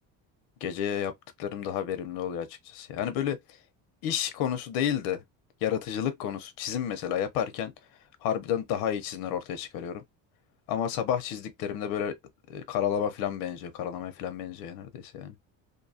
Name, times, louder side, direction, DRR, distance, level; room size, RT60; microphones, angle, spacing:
voice 1, 0.6-1.1 1.4-3.4 4.0-5.2 5.6-7.7 8.2-10.0 10.7-12.2 12.5-15.4, left 9 dB, 90° left, 0.7 m, -31 dB
2.6 x 2.3 x 2.6 m
cardioid pair, 160°, 35 cm